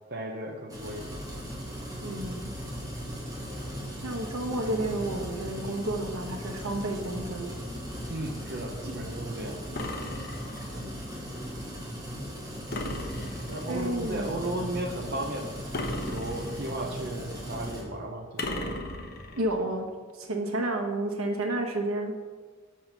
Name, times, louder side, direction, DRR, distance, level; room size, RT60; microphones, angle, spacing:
voice 1, 0.1-1.2 8.1-9.6 13.5-18.8, right 1 dB, 50° right, 1 dB, 0.8 m, -35 dB
sound 1, 0.7-17.8, equal, 15° right, 2.2 m, -38 dB
voice 2, 2.0-2.5 4.0-7.5 10.8-10.9 13.7-14.3 19.3-19.9 20.2-22.1, right 1 dB, 80° right, 3 dB, 1.2 m, -31 dB
sound 2, 9.8-10.8 12.7-13.8 15.7-16.9 18.4-19.5, left 1 dB, 50° left, 1.0 m, -36 dB
7.2 x 5.6 x 6.0 m, 1.5 s
head